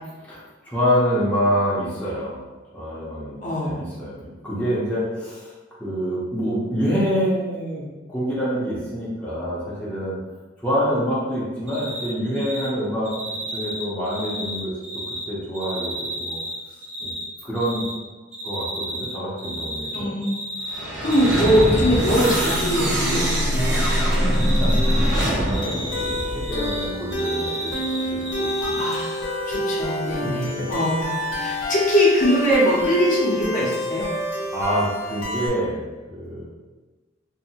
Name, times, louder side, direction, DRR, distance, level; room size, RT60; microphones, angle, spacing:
voice 1, 0.2-2.4 2.7-5.5 5.8-10.2 10.6-14.7 15.1-16.4 17.0-17.1 17.4-17.8 18.4-20.1 24.2-28.8 30.6-30.7 34.5-36.4, equal, 10° left, -9 dB, 0.7 m, -26 dB
voice 2, 3.4-3.8 19.9-20.3 21.0-23.8 28.6-34.1, equal, 40° left, -6 dB, 0.7 m, -22 dB
Cricket, 11.7-12.1 12.3-12.7 13.0-15.2 15.5-17.2 17.5-17.9 18.3-19.1 19.4-20.8 21.0-23.3 23.6-24.0 24.3-26.8 27.1-28.9, right 1 dB, 35° right, 0.6 m, -32 dB
sound 1, 20.6-26.9, equal, 75° right, 0.8 m, -23 dB
sound 2, 21.1-35.5, equal, 80° left, 0.6 m, -30 dB
2.7 x 2.5 x 2.8 m, 1.2 s
head